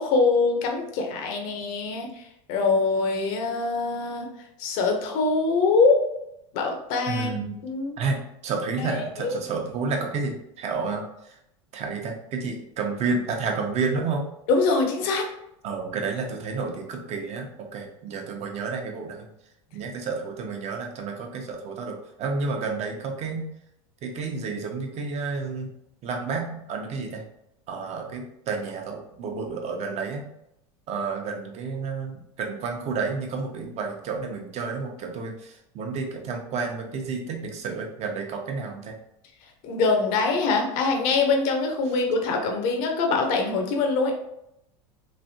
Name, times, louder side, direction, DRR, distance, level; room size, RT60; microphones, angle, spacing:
voice 1, 0.0-2.2 2.5-4.3 4.6-6.0 6.5-7.3 7.6-8.0 8.8-9.4 14.5-15.3 39.6-44.1, left 3 dB, 60° left, 2 dB, 0.7 m, -23 dB
voice 2, 7.1-7.6 8.0-8.2 8.4-11.3 11.7-14.2 15.6-19.3 19.7-23.4 24.0-25.7 26.0-27.2 27.7-30.3 30.9-38.9, right 4 dB, 40° right, 2 dB, 0.8 m, -30 dB
3.2 x 2.6 x 2.7 m, 0.80 s
hypercardioid pair, 95°, 16 cm